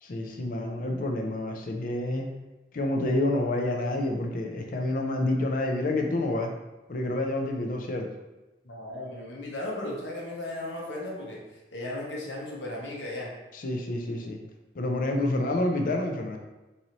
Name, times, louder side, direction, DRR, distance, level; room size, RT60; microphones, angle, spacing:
voice 1, 0.0-2.3 2.7-6.5 6.9-8.1 13.5-14.4 14.7-16.4, left 1 dB, 50° left, 2 dB, 0.5 m, -28 dB
voice 2, 8.6-11.4 11.7-13.3, left 1 dB, 75° left, -3 dB, 0.9 m, -36 dB
3.9 x 2.7 x 3.0 m, 1.1 s
head